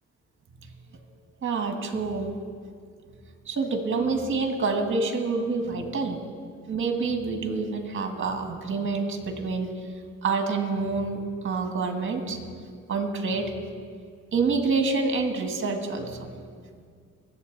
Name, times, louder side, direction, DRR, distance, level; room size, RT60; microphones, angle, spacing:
voice 1, 1.4-2.4 3.5-6.2 6.7-9.9 10.2-12.4 12.9-13.5 14.3-16.3, right 4 dB, 40° right, 4 dB, 1.9 m, -27 dB
22.5 x 8.0 x 4.1 m, 2.1 s
cardioid pair, 90°, 30 cm